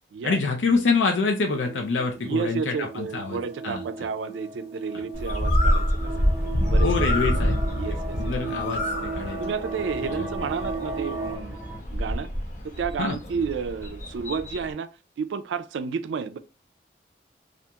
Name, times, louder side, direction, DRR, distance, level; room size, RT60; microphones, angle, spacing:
voice 1, 0.2-3.8 4.9-5.0 6.8-7.6 8.2-9.4 10.2-10.3 13.0-13.2, left 4 dB, 90° left, 0.4 m, -26 dB
sound 1, 1.4-11.4, right 3 dB, 35° right, 0.9 m, -36 dB
voice 2, 2.2-6.3 6.7-8.3 9.4-11.6 11.9-12.3 12.6-16.4, right 6 dB, 90° right, 0.3 m, -31 dB
Bird, 5.1-14.7, equal, 40° left, 0.6 m, -27 dB
sound 2, 6.0-11.8, right 1 dB, 10° right, 0.7 m, -40 dB
2.4 x 2.3 x 2.8 m
head